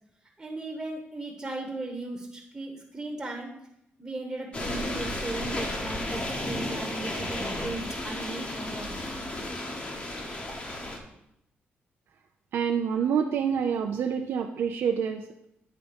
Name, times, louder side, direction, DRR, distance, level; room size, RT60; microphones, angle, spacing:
voice 1, 0.4-3.5 4.0-8.9, right 2 dB, 15° right, 0 dB, 1.1 m, -37 dB
sound 1, 4.5-11.0, left 1 dB, 30° left, 1.3 m, -33 dB
voice 2, 12.5-15.5, right 7 dB, 75° right, 3 dB, 0.5 m, -27 dB
9.2 x 3.7 x 5.1 m, 0.81 s
cardioid pair, 115°, 4 cm